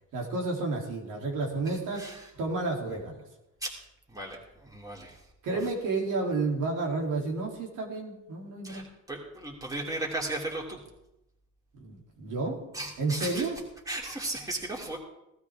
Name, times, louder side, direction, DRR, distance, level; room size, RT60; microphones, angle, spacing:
voice 1, 0.1-2.0 2.4-3.2 5.4-8.8 11.8-12.6 13.0-13.6, right 3 dB, 85° right, -1 dB, 3.4 m, -31 dB
voice 2, 2.0-2.3 3.6-3.8 4.1-5.2 5.5-5.6 8.6-10.8 12.7-13.5 13.9-15.0, right 2 dB, 10° right, -2 dB, 3.1 m, -36 dB
17.5 x 13.0 x 3.7 m, 0.89 s
cardioid pair, 90°, 30 cm